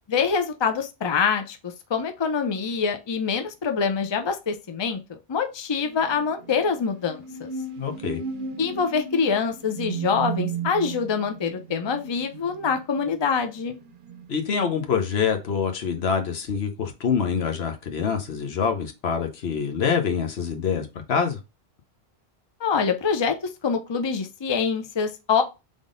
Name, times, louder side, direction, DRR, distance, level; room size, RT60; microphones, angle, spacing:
voice 1, 0.1-5.0 5.3-7.5 8.6-13.8 22.6-23.4 23.6-25.4, left 6 dB, 30° left, 0.5 m, -25 dB
sound 1, 5.8-15.0, right 6 dB, 60° right, 0.7 m, -36 dB
voice 2, 7.8-8.2 14.3-21.4, left 6 dB, 75° left, 1.1 m, -25 dB
3.7 x 3.5 x 3.7 m
omnidirectional pair, 1.1 m